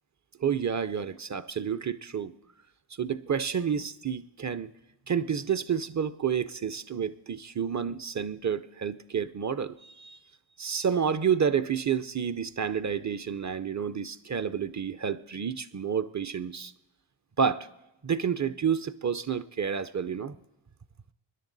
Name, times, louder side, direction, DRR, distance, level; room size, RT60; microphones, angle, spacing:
voice 1, 0.4-2.3 2.9-4.7 5.1-10.2 10.6-16.7 17.4-17.7 18.0-20.3, right 7 dB, 35° right, 0.5 m, -29 dB
24.5 x 10.5 x 4.0 m
wide cardioid pair, 80°, 49 cm